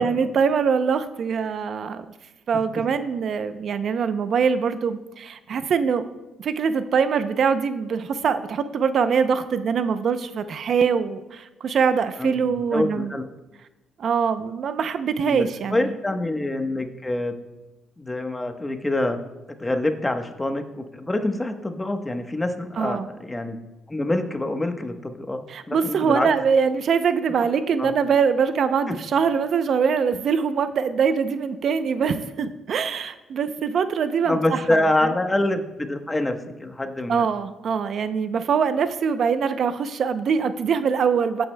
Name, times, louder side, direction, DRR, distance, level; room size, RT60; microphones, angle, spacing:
voice 1, 0.0-2.0 2.5-6.1 6.4-13.2 14.0-15.9 22.8-23.1 25.5-34.6 35.0-35.1 37.1-41.5, right 6 dB, 60° right, 11 dB, 0.6 m, -23 dB
voice 2, 12.2-13.2 15.2-17.3 18.0-19.2 19.6-23.6 23.9-26.3 27.8-27.9 34.3-37.3, left 1 dB, 15° left, 6 dB, 1.1 m, -26 dB
16.0 x 9.1 x 2.2 m, 1.0 s
cardioid pair, 90°, 0 cm